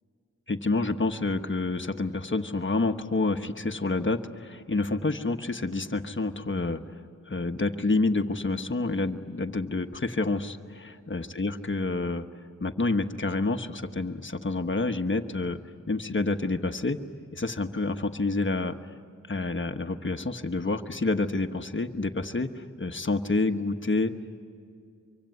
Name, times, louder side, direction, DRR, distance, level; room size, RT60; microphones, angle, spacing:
voice 1, 0.5-6.8 7.3-12.2 12.6-15.6 15.9-17.0 17.3-18.8 19.3-24.1, left 3 dB, 40° left, 7 dB, 1.2 m, -28 dB
24.5 x 24.5 x 9.5 m, 2.4 s
wide cardioid pair, 80°, 31 cm